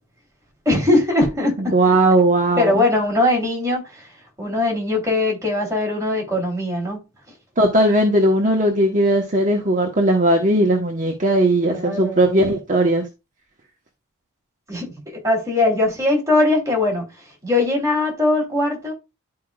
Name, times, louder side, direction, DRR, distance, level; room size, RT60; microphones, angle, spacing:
voice 1, 0.6-1.7 2.6-3.8 4.4-7.0 11.6-12.5 14.7-14.9 15.2-17.1 17.4-18.9, left 2 dB, 15° right, 3.1 m, -20 dB
voice 2, 1.7-2.8 7.6-13.0, right 1 dB, 35° right, 1.1 m, -18 dB
11.5 x 4.8 x 2.3 m
head